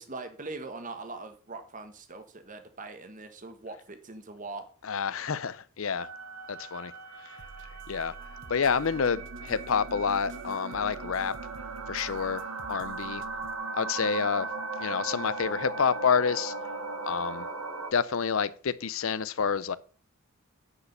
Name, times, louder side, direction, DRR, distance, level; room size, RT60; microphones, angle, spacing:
voice 1, 0.0-4.7, right 3 dB, 35° right, 1.3 m, -41 dB
voice 2, 4.8-6.1 6.5-6.9 7.2-7.4 7.9-11.3 11.9-12.4 12.7-13.2 13.7-14.5 14.8-16.5 17.0-17.5 17.9-19.8, left 6 dB, 65° left, 0.6 m, -28 dB
sound 1, 6.0-17.9, right 3 dB, 80° right, 1.2 m, -38 dB
sound 2, 7.4-13.5, right 4 dB, 55° right, 0.7 m, -49 dB
9.9 x 5.0 x 6.6 m
head